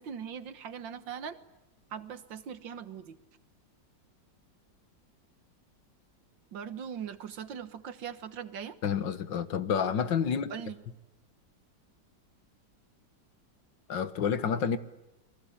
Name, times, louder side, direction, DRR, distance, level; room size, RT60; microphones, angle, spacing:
voice 1, 0.0-1.4 1.9-3.2 6.5-8.8 10.5-10.8, right 7 dB, 80° right, 2.1 m, -40 dB
voice 2, 8.8-10.5 13.9-14.8, left 7 dB, 80° left, 2.1 m, -29 dB
29.5 x 22.0 x 8.7 m
omnidirectional pair, 2.0 m